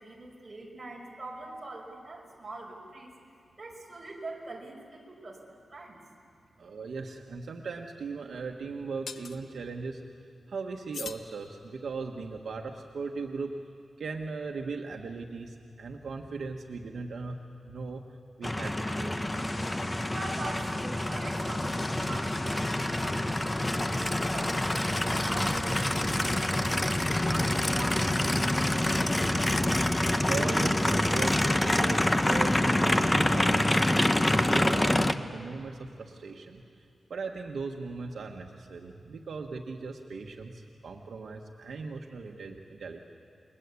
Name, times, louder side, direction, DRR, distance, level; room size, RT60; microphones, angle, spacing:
voice 1, 0.0-3.1 3.6-5.4 5.7-6.0 20.1-29.3, right 2 dB, 20° right, -2 dB, 5.2 m, -43 dB
voice 2, 6.6-10.0 10.5-13.6 14.0-18.0 18.4-19.1 30.3-36.6 37.1-43.0, right 4 dB, 65° right, 2 dB, 1.4 m, -38 dB
sound 1, 7.1-7.2 9.1-9.4 10.9-12.0, left 5 dB, 80° left, 1.1 m, -43 dB
Aircraft, 18.4-35.1, left 1 dB, 15° left, 0.7 m, -26 dB
sound 2, 19.4-29.8, left 2 dB, 30° left, 1.4 m, -46 dB
30.0 x 21.5 x 8.5 m, 2.5 s
wide cardioid pair, 170°, 0 cm